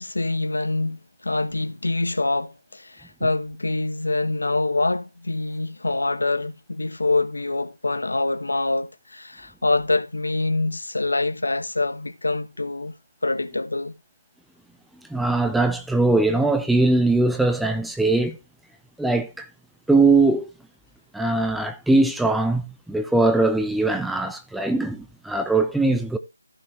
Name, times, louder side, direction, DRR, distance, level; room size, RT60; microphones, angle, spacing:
voice 1, 0.0-12.9 13.2-13.9, left 2 dB, 90° left, 1.2 m, -25 dB
voice 2, 15.1-18.3 19.0-19.5 19.9-20.5 21.1-26.2, right 2 dB, ahead, 0.5 m, -21 dB
15.0 x 5.1 x 3.2 m
figure-of-eight pair, 170°, 0 cm